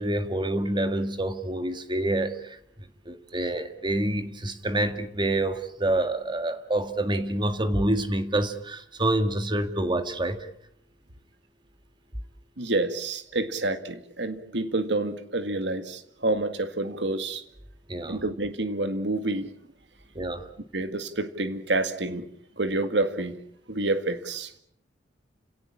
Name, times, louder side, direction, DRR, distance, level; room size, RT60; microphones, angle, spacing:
voice 1, 0.0-2.6 3.1-10.5 17.9-18.2 20.2-20.5, right 1 dB, 25° right, 9 dB, 2.0 m, -27 dB
voice 2, 12.6-17.4 18.1-19.5 20.7-22.2 22.6-23.4 23.7-24.6, right 2 dB, 70° right, 10 dB, 2.0 m, -28 dB
29.5 x 17.5 x 8.6 m, 0.72 s
head